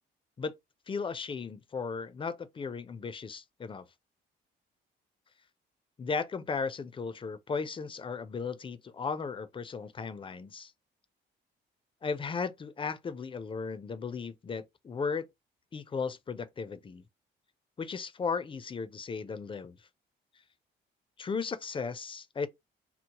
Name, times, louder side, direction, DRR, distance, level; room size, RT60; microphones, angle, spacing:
voice 1, 0.9-3.9 6.0-10.7 12.0-15.3 15.7-17.0 17.8-19.8 21.2-22.5, left 5 dB, 25° left, 0.4 m, -36 dB
2.9 x 2.0 x 2.8 m
cardioid pair, 90°, 20 cm